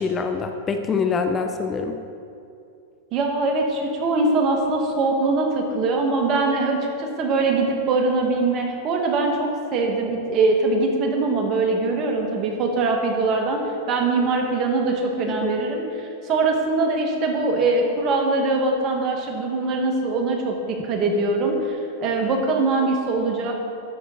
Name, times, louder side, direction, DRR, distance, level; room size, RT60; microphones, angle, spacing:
voice 1, 0.0-2.0 15.3-15.5, left 5 dB, 25° left, 6 dB, 0.5 m, -25 dB
voice 2, 3.1-13.6 13.9-23.6, right 3 dB, 40° right, 2 dB, 1.5 m, -22 dB
12.5 x 5.7 x 3.9 m, 2.6 s
hypercardioid pair, 115°, 0 cm